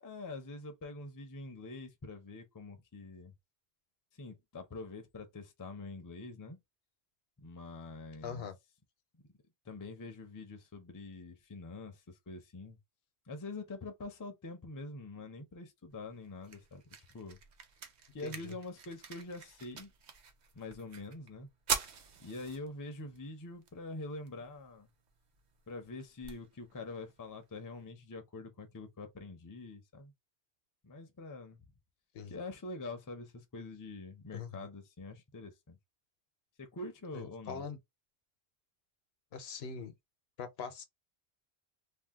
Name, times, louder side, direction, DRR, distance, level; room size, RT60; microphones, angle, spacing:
voice 1, 0.0-3.3 4.2-6.6 7.4-8.5 9.1-9.2 9.6-12.8 13.3-17.4 18.1-19.9 20.5-21.5 22.2-24.9 25.7-30.1 30.8-31.6 32.3-35.8 36.6-37.6, left 2 dB, 25° left, 0.4 m, -45 dB
voice 2, 8.2-8.6 18.2-18.6 32.1-32.3 34.3-34.7 37.1-37.8 39.3-39.9 40.4-40.8, left 6 dB, 75° left, 0.9 m, -42 dB
sound 1, 15.9-27.9, right 6 dB, 50° right, 0.6 m, -45 dB
2.6 x 2.1 x 3.4 m
omnidirectional pair, 1.1 m